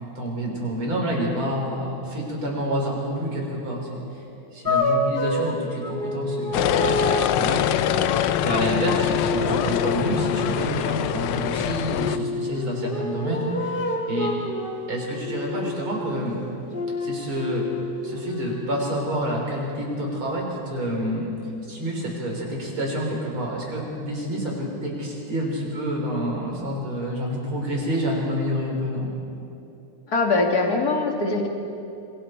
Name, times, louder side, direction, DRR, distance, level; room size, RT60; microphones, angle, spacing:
voice 1, 0.1-4.2 4.5-6.9 7.2-7.7 8.4-13.8 14.1-14.3 14.9-16.4 17.0-17.7 18.0-21.3 21.6-29.1, equal, 75° right, -2 dB, 5.0 m, -28 dB
sound 1, 4.6-10.7 11.9-16.2 16.7-18.6, left 2 dB, 25° left, 1.5 m, -28 dB
sound 2, 6.5-12.2, left 11 dB, 80° left, 1.5 m, -24 dB
voice 2, 30.1-31.5, left 3 dB, 45° left, 1 dB, 2.6 m, -22 dB
26.5 x 23.0 x 4.5 m, 2.7 s
omnidirectional pair, 2.3 m